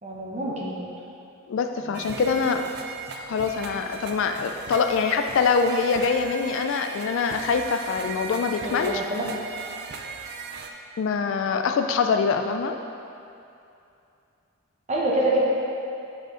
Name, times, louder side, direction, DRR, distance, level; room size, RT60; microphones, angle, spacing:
voice 1, 0.0-0.8 8.6-9.3 14.9-15.4, right 1 dB, 30° right, -4 dB, 0.9 m, -26 dB
voice 2, 1.5-2.7 3.3-9.0 11.0-12.8, left 5 dB, 60° left, 6 dB, 0.3 m, -24 dB
sound 1, 1.9-10.7, right 5 dB, 45° right, 0.4 m, -38 dB
6.5 x 5.0 x 3.7 m, 2.6 s
head